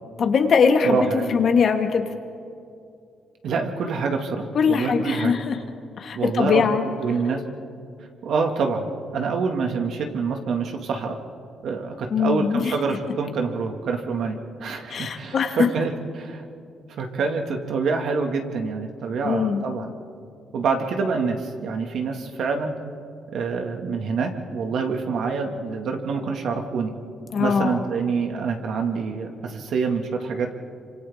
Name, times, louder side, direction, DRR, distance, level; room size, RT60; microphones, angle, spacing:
voice 1, 0.2-2.1 4.5-5.6 6.0-6.8 12.1-12.7 14.9-15.7 19.2-19.6 27.3-27.8, left 6 dB, 55° left, 5 dB, 1.8 m, -21 dB
voice 2, 0.8-1.3 3.4-5.3 6.1-6.7 7.0-7.4 8.2-11.2 11.6-16.4 17.0-19.9 20.5-22.8 23.3-26.9 27.4-30.5, right 4 dB, 70° right, 3 dB, 2.0 m, -26 dB
28.0 x 25.5 x 3.7 m, 2.4 s
cardioid pair, 90°, 0 cm